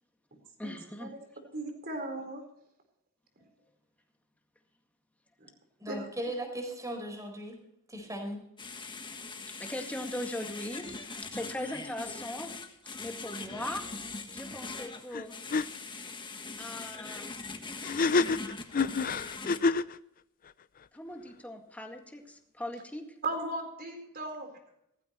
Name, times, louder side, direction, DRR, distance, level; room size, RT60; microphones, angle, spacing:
voice 1, 0.6-1.1 9.6-12.5 13.0-13.8 14.3-15.4 16.6-17.4 20.9-23.0, left 1 dB, 5° left, 3 dB, 2.0 m, -39 dB
voice 2, 1.5-2.4 5.4-5.5 5.9-6.1 23.2-24.5, right 2 dB, 45° right, 4 dB, 4.2 m, -36 dB
voice 3, 5.8-7.6 7.9-8.4, right 1 dB, 15° right, 3 dB, 4.5 m, -37 dB
sound 1, 8.6-19.6, left 3 dB, 20° left, 1.4 m, -42 dB
sound 2, 15.1-15.2 15.5-15.6 17.8-19.9, left 4 dB, 40° left, 0.5 m, -27 dB
17.0 x 14.5 x 3.1 m, 0.77 s
head